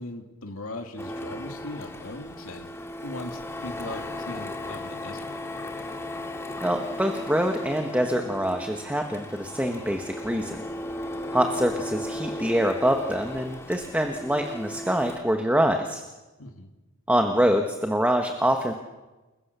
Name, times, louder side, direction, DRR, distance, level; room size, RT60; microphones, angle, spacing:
voice 1, 0.0-2.7 3.0-5.3 16.4-16.7, left 2 dB, 80° left, 3 dB, 2.6 m, -39 dB
Printer, 1.0-15.2, left 1 dB, 10° left, 2.1 m, -36 dB
voice 2, 6.6-10.6 11.3-16.0 17.1-18.7, equal, 5° right, 4 dB, 1.3 m, -25 dB
29.5 x 21.5 x 6.8 m, 1.1 s
head